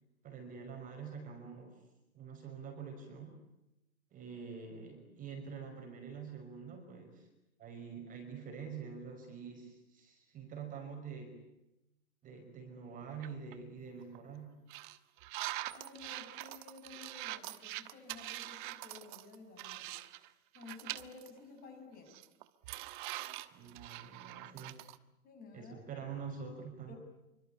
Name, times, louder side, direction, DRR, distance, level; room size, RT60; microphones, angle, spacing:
voice 1, 0.2-1.8 2.1-3.3 4.1-7.3 7.6-11.4 12.2-14.6 23.5-24.9 25.5-26.9, right 6 dB, 20° right, 3 dB, 5.5 m, -46 dB
sound 1, 13.2-13.5 14.0-14.2 14.7-20.3 20.5-21.3 21.6-21.7 22.1-25.0, right 17 dB, 35° right, 1.3 m, -44 dB
voice 2, 15.7-20.0 20.5-22.2 25.2-25.8 26.9-27.0, left 4 dB, 20° left, 4 dB, 7.6 m, -53 dB
28.0 x 24.5 x 8.6 m, 0.93 s
hypercardioid pair, 140°, 43 cm